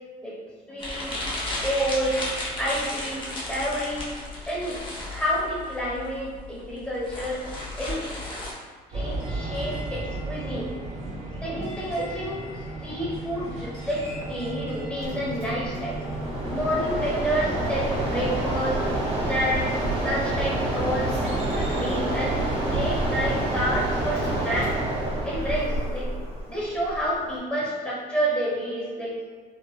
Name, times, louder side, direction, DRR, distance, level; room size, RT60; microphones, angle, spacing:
voice 1, 0.7-1.2 1.6-2.2 2.6-4.1 4.5-4.8 5.1-7.4 7.8-8.1 8.9-10.7 11.0-11.1 11.4-12.4 12.8-16.0 16.5-18.8 19.2-24.7 25.2-26.1 26.5-29.1, equal, 5° left, -7 dB, 1.0 m, -29 dB
sound 1, 0.8-8.5, left 2 dB, 30° left, 0.8 m, -34 dB
sound 2, 8.9-25.8, right 2 dB, 40° right, 0.8 m, -37 dB
Mechanisms, 15.0-27.4, right 1 dB, 70° right, 1.0 m, -28 dB
3.5 x 2.0 x 2.2 m, 1.5 s
cardioid pair, 110°, 17 cm